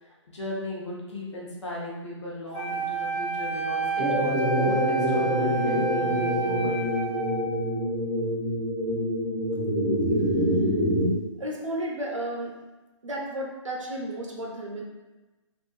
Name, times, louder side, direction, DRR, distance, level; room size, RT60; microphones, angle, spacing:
voice 1, 0.0-6.9, left 1 dB, 70° left, -4 dB, 0.9 m, -36 dB
Wind instrument woodwind instrument, 2.5-7.6, right 5 dB, 15° left, 0.8 m, -30 dB
sound 1, 4.0-11.1, equal, 15° right, 0.6 m, -26 dB
voice 2, 11.4-12.6 13.0-14.8, right 1 dB, 85° right, -1 dB, 0.7 m, -33 dB
2.4 x 2.4 x 2.3 m, 1.1 s
figure-of-eight pair, 135°, 16 cm